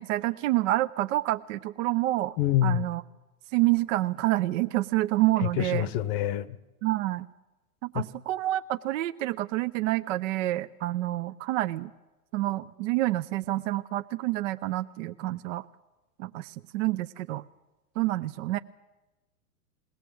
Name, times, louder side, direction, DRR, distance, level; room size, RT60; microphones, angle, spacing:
voice 1, 0.0-2.3 2.6-3.0 3.5-5.9 6.8-7.3 7.8-11.9 12.3-15.6 16.2-17.4 18.0-18.6, right 17 dB, 55° right, 0.6 m, -28 dB
voice 2, 2.4-2.8 5.6-6.6 7.9-8.0, left 12 dB, 40° left, 0.8 m, -26 dB
21.5 x 18.0 x 7.7 m
hypercardioid pair, 130°, 46 cm